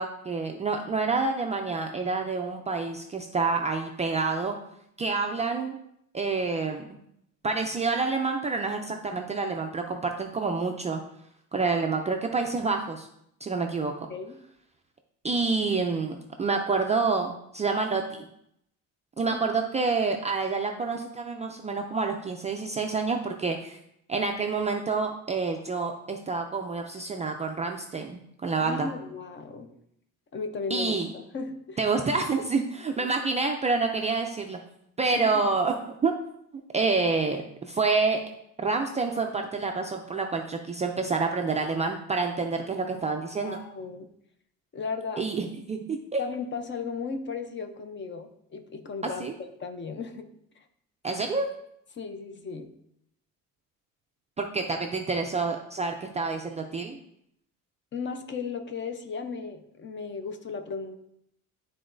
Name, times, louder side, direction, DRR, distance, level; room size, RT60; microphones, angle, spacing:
voice 1, 0.0-4.6 5.0-5.8 6.1-7.0 7.4-11.0 11.5-13.1 13.4-14.1 15.2-18.3 19.2-23.8 24.1-28.9 30.7-31.1 31.8-34.6 35.0-35.8 36.0-36.1 36.7-38.2 38.6-43.6 45.2-46.2 49.2-49.3 51.0-51.5 54.4-57.0, right 4 dB, 20° right, 2 dB, 0.3 m, -28 dB
voice 2, 28.6-29.8 30.3-31.8 33.0-33.1 35.1-35.2 43.3-44.1 44.7-45.2 46.2-49.3 49.6-50.3 51.9-52.7 57.9-61.0, left 5 dB, 35° left, 7 dB, 0.6 m, -35 dB
11.0 x 3.9 x 2.6 m, 0.75 s
cardioid pair, 155°, 34 cm